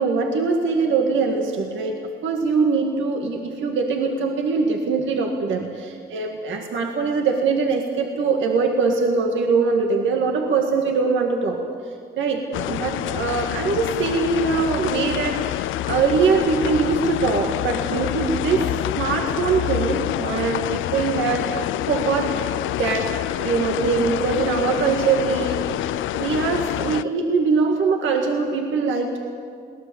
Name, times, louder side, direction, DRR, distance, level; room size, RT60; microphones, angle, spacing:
voice 1, 0.0-11.6 12.2-29.2, right 4 dB, 75° right, 2 dB, 2.0 m, -22 dB
sound 1, 12.5-27.0, left 15 dB, 80° left, 0.4 m, -27 dB
22.0 x 18.0 x 7.1 m, 2.2 s
cardioid pair, 90°, 20 cm